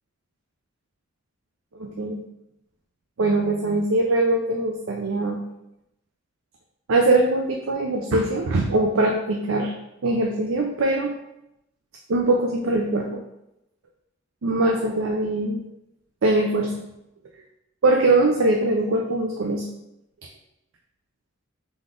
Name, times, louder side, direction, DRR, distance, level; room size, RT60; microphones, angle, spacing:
voice 1, 1.7-2.2 3.2-5.4 6.9-9.7 10.0-11.1 12.1-13.2 14.4-15.6 16.2-16.7 17.8-19.6, right 2 dB, 70° right, 2 dB, 0.5 m, -22 dB
3.9 x 3.6 x 3.7 m, 0.86 s
head